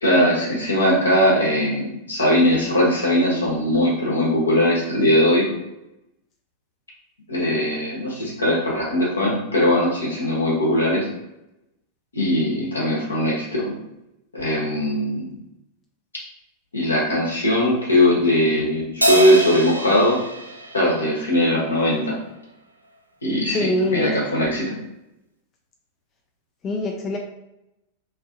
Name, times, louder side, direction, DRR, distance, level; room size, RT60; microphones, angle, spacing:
voice 1, 0.0-5.4 7.3-11.1 12.1-13.8 14.3-15.4 16.7-20.2 20.7-22.2 23.2-24.8, left 1 dB, 75° left, -3 dB, 1.0 m, -20 dB
Crash cymbal, 19.0-21.7, equal, 85° right, 0.3 m, -25 dB
voice 2, 23.5-24.1 26.6-27.2, left 2 dB, 30° left, 1 dB, 0.4 m, -23 dB
2.8 x 2.6 x 2.5 m, 0.89 s
figure-of-eight pair, 90°, 0 cm